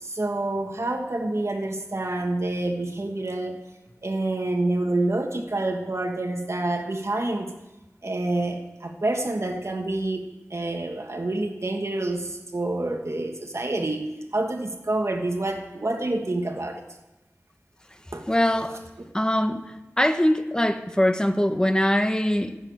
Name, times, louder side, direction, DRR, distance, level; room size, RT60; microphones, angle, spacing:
voice 1, 0.0-3.6 4.0-7.5 8.0-14.0 14.3-16.8 18.1-18.3 19.0-19.1, right 2 dB, 60° right, 1.4 m, -27 dB
voice 2, 18.3-18.8 19.1-19.6 20.0-22.6, left 1 dB, 15° left, 1.1 m, -22 dB
15.5 x 8.0 x 8.1 m
wide cardioid pair, 50°, 5 cm